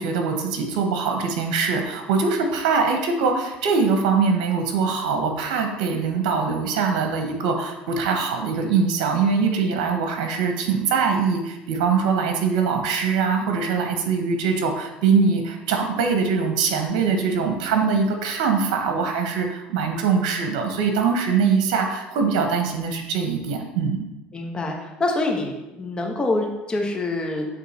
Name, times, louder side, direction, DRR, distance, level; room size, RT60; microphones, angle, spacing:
voice 1, 0.0-24.1, right 5 dB, 85° right, 4 dB, 1.0 m, -22 dB
voice 2, 24.3-27.5, left 2 dB, 20° left, 1 dB, 1.4 m, -26 dB
8.3 x 3.7 x 4.2 m, 0.98 s
supercardioid pair, 100°, 4 cm